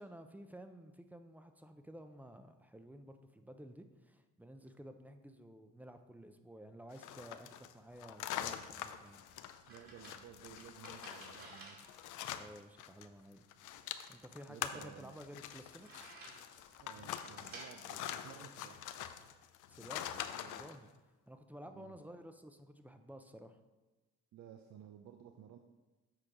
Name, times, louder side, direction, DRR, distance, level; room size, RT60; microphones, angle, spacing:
voice 1, 0.0-9.3 12.3-13.4 14.1-16.1 19.7-20.9 21.3-23.6, equal, 5° right, 7 dB, 0.5 m, -53 dB
sound 1, 6.9-13.1 13.3-20.8, left 10 dB, 85° left, 0.5 m, -45 dB
sound 2, 8.6-19.2, right 2 dB, 45° right, 2.7 m, -57 dB
voice 2, 9.7-12.0 14.5-15.1 16.8-18.9 20.5-20.6 21.6-22.0 24.3-25.6, right 9 dB, 65° right, 5 dB, 0.6 m, -55 dB
7.6 x 4.5 x 4.9 m, 1.2 s
cardioid pair, 90°, 30 cm